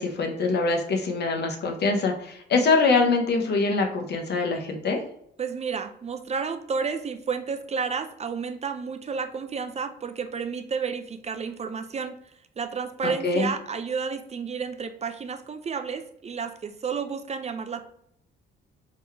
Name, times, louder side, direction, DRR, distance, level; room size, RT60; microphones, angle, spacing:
voice 1, 0.0-5.0 13.0-13.5, left 3 dB, 55° left, 3 dB, 1.0 m, -24 dB
voice 2, 5.4-12.2 12.6-17.8, right 5 dB, 35° right, 8 dB, 0.4 m, -31 dB
3.7 x 3.0 x 3.4 m, 0.73 s
cardioid pair, 90°, 20 cm